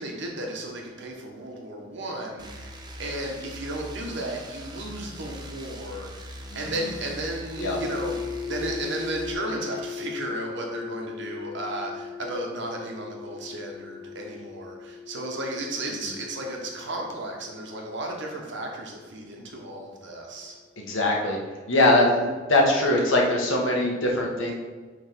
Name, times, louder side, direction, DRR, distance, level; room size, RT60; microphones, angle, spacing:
voice 1, 0.0-8.2 8.5-20.6, right 1 dB, 65° right, 0 dB, 1.2 m, -34 dB
sound 1, 2.4-9.3, right 1 dB, 20° right, 0.7 m, -41 dB
sound 2, 7.6-19.5, left 6 dB, 20° left, 1.4 m, -38 dB
voice 2, 20.8-21.4 21.7-24.5, left 1 dB, 75° left, -1 dB, 1.3 m, -22 dB
6.2 x 3.4 x 5.2 m, 1.4 s
head